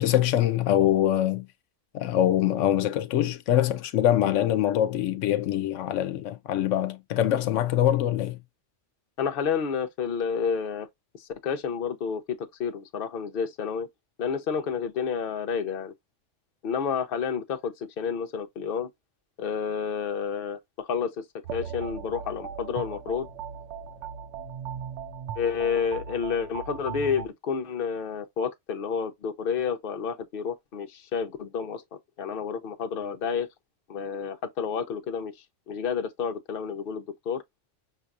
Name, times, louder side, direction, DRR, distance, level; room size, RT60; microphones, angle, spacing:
voice 1, 0.0-1.5 1.9-8.4, left 12 dB, 85° left, 0.9 m, -24 dB
voice 2, 9.2-10.9 11.1-13.9 14.2-15.9 16.6-18.9 19.4-21.2 21.5-23.3 25.4-33.5 33.9-35.3 35.7-37.4, left 6 dB, 55° left, 0.9 m, -30 dB
sound 1, 21.4-27.3, right 7 dB, 75° right, 0.9 m, -38 dB
5.8 x 2.7 x 2.4 m
omnidirectional pair, 1.2 m